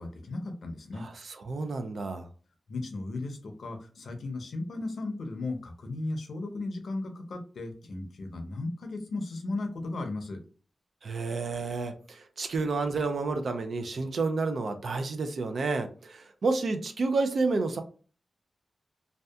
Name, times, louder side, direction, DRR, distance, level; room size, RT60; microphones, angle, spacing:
voice 1, 0.0-1.0 2.7-10.4, left 2 dB, 70° left, 5 dB, 0.5 m, -36 dB
voice 2, 1.0-2.3 11.0-17.8, right 3 dB, 65° right, 7 dB, 0.3 m, -30 dB
2.6 x 2.2 x 2.3 m, 0.38 s
wide cardioid pair, 140°, 0 cm